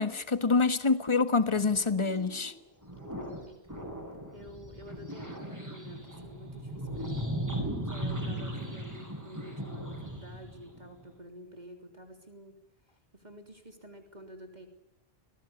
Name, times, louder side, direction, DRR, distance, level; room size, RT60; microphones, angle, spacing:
voice 1, 0.0-2.5, left 4 dB, 30° left, 11 dB, 1.5 m, -26 dB
sound 1, 1.5-2.5 2.8-3.4 3.7-11.0, right 1 dB, 15° right, 8.0 m, -38 dB
voice 2, 2.9-3.8 4.3-7.3 7.8-12.6 13.1-14.7, equal, 40° right, 4 dB, 3.5 m, -50 dB
25.5 x 19.5 x 9.8 m, 0.84 s
omnidirectional pair, 1.1 m